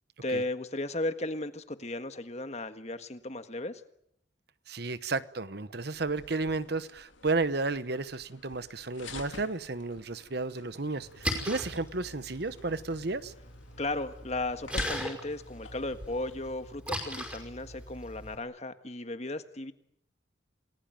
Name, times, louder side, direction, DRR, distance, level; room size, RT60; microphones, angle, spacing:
voice 1, 0.2-3.8 13.8-19.7, left 2 dB, 35° left, 1.6 m, -35 dB
voice 2, 4.7-13.3, right 3 dB, 55° right, 1.1 m, -33 dB
sound 1, 5.9-16.5, left 3 dB, 85° left, 2.7 m, -47 dB
Splash splatter, 11.0-18.4, equal, 5° right, 5.4 m, -39 dB
29.0 x 20.0 x 9.1 m
head